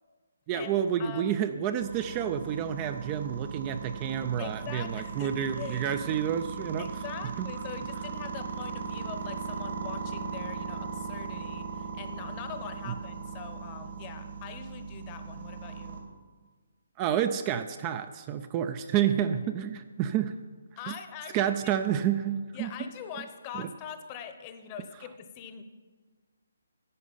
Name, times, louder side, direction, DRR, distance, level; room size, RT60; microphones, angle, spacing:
voice 1, 0.5-6.9 7.4-7.5 17.0-20.4 20.9-21.0 21.3-22.7, right 9 dB, 25° right, 10 dB, 0.4 m, -29 dB
voice 2, 1.0-1.3 4.4-5.9 6.8-16.0 19.0-19.1 20.8-21.5 22.5-25.6, left 7 dB, 25° left, 8 dB, 0.9 m, -43 dB
sound 1, 1.8-16.0, right 5 dB, 65° right, 2.4 m, -38 dB
11.0 x 7.9 x 5.5 m, 1.4 s
figure-of-eight pair, 145°, 0 cm